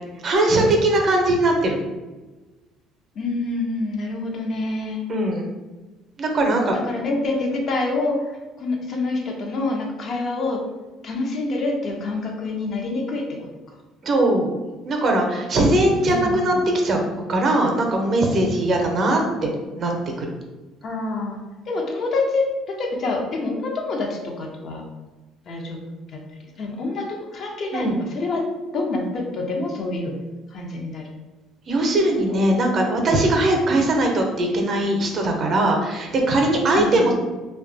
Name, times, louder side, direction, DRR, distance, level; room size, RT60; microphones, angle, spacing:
voice 1, 0.2-1.8 5.1-5.5 6.2-6.8 14.0-14.5 14.8-16.5 16.8-17.0 17.3-19.5 19.7-19.9 20.2-20.3 27.7-28.0 31.7-37.1, right 1 dB, 50° right, 2 dB, 0.6 m, -20 dB
voice 2, 3.2-5.0 6.8-10.6 11.0-13.5 16.0-16.7 20.8-21.4 21.7-24.8 25.5-25.8 26.1-26.2 26.6-28.5 28.7-30.1 30.5-31.0 32.3-32.4 36.8-37.1, left 2 dB, 50° left, 1 dB, 0.6 m, -26 dB
2.8 x 2.2 x 2.6 m, 1.2 s
supercardioid pair, 80°, 0 cm